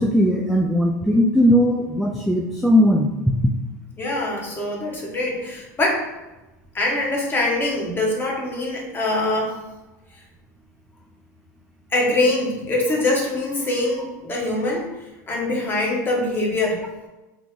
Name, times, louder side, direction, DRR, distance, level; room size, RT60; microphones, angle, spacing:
voice 1, 0.0-3.1, equal, ahead, -1 dB, 0.3 m, -18 dB
voice 2, 4.0-6.1 6.7-9.6 11.9-14.9 15.3-16.8, left 2 dB, 20° left, -2 dB, 1.1 m, -23 dB
3.0 x 2.5 x 3.6 m, 1.0 s
hypercardioid pair, 110°, 10 cm